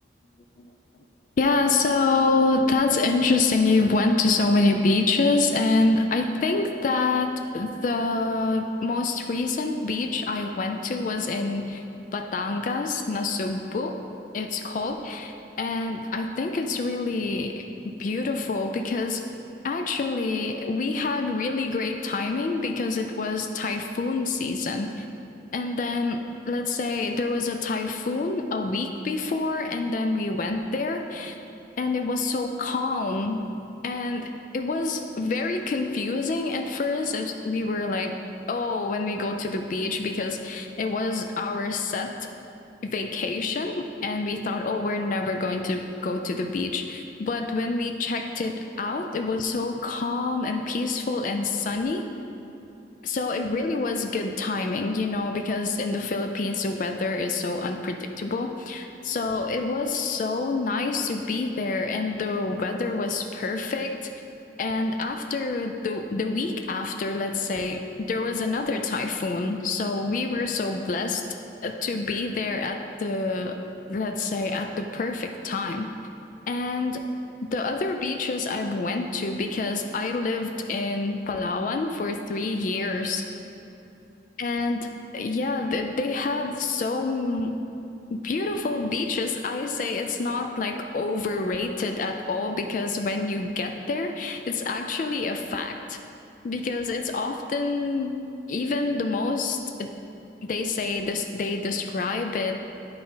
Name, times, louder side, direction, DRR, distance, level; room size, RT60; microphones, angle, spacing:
voice 1, 1.4-14.0 14.3-19.2 19.6-25.1 25.5-31.4 31.8-33.4 33.8-38.2 38.5-42.1 42.8-52.1 53.0-64.1 64.6-71.2 71.6-73.6 73.9-75.9 76.5-77.0 77.4-83.2 84.4-87.5 88.1-96.0 96.4-98.2 98.5-99.9 100.4-102.6, left 3 dB, 45° left, 5 dB, 0.3 m, -27 dB
10.5 x 4.0 x 3.9 m, 2.8 s
head